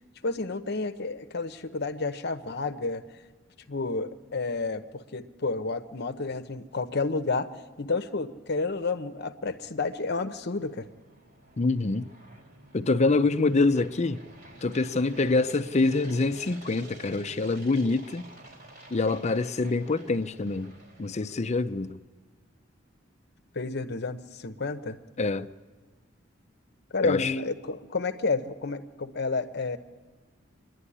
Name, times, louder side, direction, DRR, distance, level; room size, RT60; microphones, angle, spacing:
voice 1, 0.2-3.0 3.7-7.5 7.8-10.9 23.5-25.0 26.9-29.8, left 3 dB, 60° left, 0.9 m, -30 dB
sound 1, 9.7-21.9, right 2 dB, 55° right, 4.0 m, -50 dB
voice 2, 11.6-12.1 12.7-14.2 14.6-18.3 18.9-22.0 25.2-25.5 27.0-27.4, left 3 dB, 35° left, 0.6 m, -25 dB
26.5 x 11.0 x 9.9 m
head